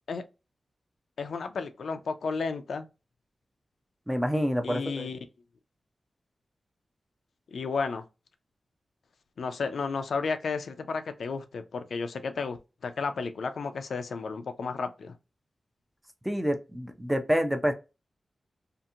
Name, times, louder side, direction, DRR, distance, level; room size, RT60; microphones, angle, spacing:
voice 1, 1.2-2.9 4.6-5.2 7.5-8.0 9.4-12.6 12.8-15.1, left 4 dB, 85° left, 0.4 m, -32 dB
voice 2, 4.1-5.1 16.2-17.7, equal, 5° right, 0.4 m, -27 dB
2.8 x 2.5 x 2.4 m
wide cardioid pair, 160°, 0 cm